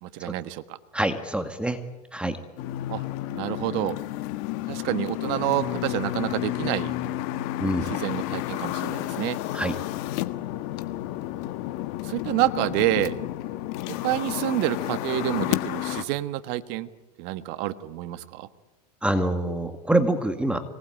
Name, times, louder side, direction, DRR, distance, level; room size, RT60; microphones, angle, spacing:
voice 1, 0.0-0.8 2.9-3.0 3.3-4.0 4.7-6.9 7.8-9.4 12.0-13.1 14.0-16.9 17.2-18.5, right 15 dB, 60° right, 12 dB, 1.4 m, -28 dB
voice 2, 0.9-1.8 2.1-2.4 7.6-7.9 9.5-9.8 19.0-20.6, right 1 dB, 5° right, 8 dB, 2.0 m, -25 dB
Parked at Stoplight of Busy Intersection, 2.6-16.0, left 15 dB, 60° left, 1.5 m, -31 dB
25.0 x 19.5 x 9.1 m, 1.2 s
hypercardioid pair, 105°, 21 cm